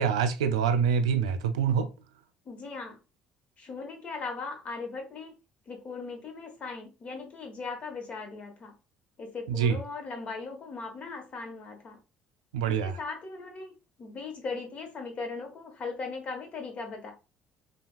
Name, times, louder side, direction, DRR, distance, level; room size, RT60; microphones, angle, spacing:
voice 1, 0.0-1.9 9.5-9.8 12.5-13.0, right 7 dB, 90° right, 0.3 m, -25 dB
voice 2, 2.4-3.0 3.6-5.4 5.7-8.7 9.2-12.0 12.7-17.1, left 4 dB, 45° left, 1.1 m, -38 dB
3.3 x 2.3 x 2.3 m
hypercardioid pair, 60°, 3 cm